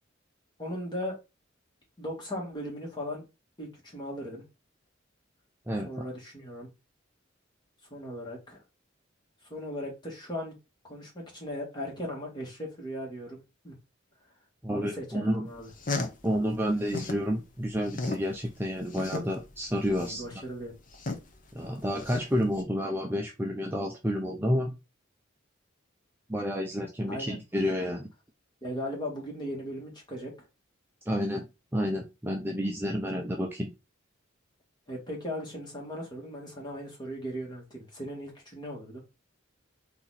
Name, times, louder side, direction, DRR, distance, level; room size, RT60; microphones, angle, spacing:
voice 1, 0.6-1.2 2.0-3.2 3.6-4.4 5.9-6.7 7.9-8.6 9.5-10.5 10.8-13.8 14.7-15.7 19.9-20.7 27.1-27.4 28.6-30.5 34.9-39.0, equal, 20° left, -2 dB, 1.8 m, -38 dB
voice 2, 14.6-15.5 16.2-20.2 21.5-24.7 26.3-28.1 31.1-31.5 31.7-33.7, equal, 10° right, 1 dB, 0.5 m, -30 dB
sound 1, 15.5-17.3 17.6-22.6, left 3 dB, 40° left, 0.8 m, -36 dB
4.2 x 2.9 x 4.1 m, 0.26 s
head